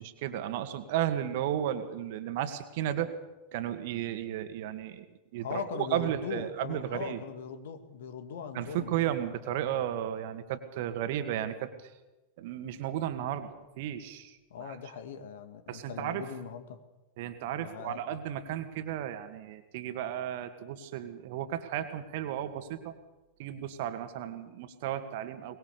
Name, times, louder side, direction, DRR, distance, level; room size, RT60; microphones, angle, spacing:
voice 1, 0.0-3.1 3.5-5.0 5.3-7.2 8.5-11.9 12.4-14.8 15.7-16.2 17.2-22.9 23.4-25.6, right 11 dB, 50° right, 9 dB, 2.1 m, -34 dB
voice 2, 5.4-9.1 14.5-16.8 17.5-18.0, left 6 dB, 60° left, 9 dB, 2.2 m, -40 dB
23.5 x 20.0 x 6.9 m, 1.1 s
figure-of-eight pair, 90°, 0 cm